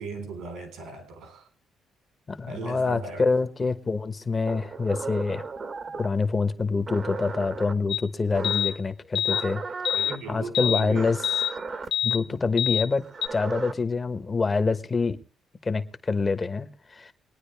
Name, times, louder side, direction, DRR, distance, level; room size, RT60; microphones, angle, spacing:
voice 1, 0.0-1.4 2.5-3.3 5.9-6.0 9.9-11.1, right 4 dB, 85° right, 4.0 m, -37 dB
voice 2, 2.3-5.4 6.0-9.6 10.3-11.2 12.0-13.0 13.3-15.2 15.6-17.1, left 4 dB, 30° left, 1.2 m, -26 dB
sound 1, 4.5-6.2 6.9-7.7 8.3-8.8 9.3-10.2 10.9-11.9 13.0-13.7, right 4 dB, 45° right, 1.2 m, -35 dB
sound 2, 7.9-8.0 8.4-8.7 9.1-9.4 9.8-10.1 10.5-10.8 11.2-11.5 11.9-12.2 12.6-12.9 13.2-13.3, left 9 dB, 70° left, 0.8 m, -25 dB
24.0 x 9.6 x 3.4 m
cardioid pair, 90°, 0 cm